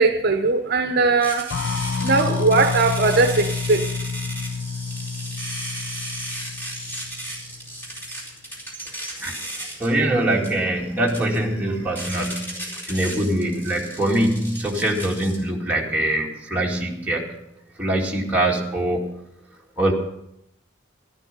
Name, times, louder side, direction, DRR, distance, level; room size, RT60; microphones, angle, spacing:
voice 1, 0.0-1.5 2.0-3.8, right 3 dB, 55° right, 7 dB, 0.9 m, -19 dB
sound 1, 1.2-15.4, right 1 dB, 10° left, 4.3 m, -35 dB
sound 2, 1.5-7.8, left 5 dB, 85° left, 0.5 m, -29 dB
voice 2, 9.8-17.4 17.8-19.1 19.8-19.9, right 1 dB, 10° right, -3 dB, 2.4 m, -23 dB
13.0 x 12.5 x 5.3 m, 0.79 s
head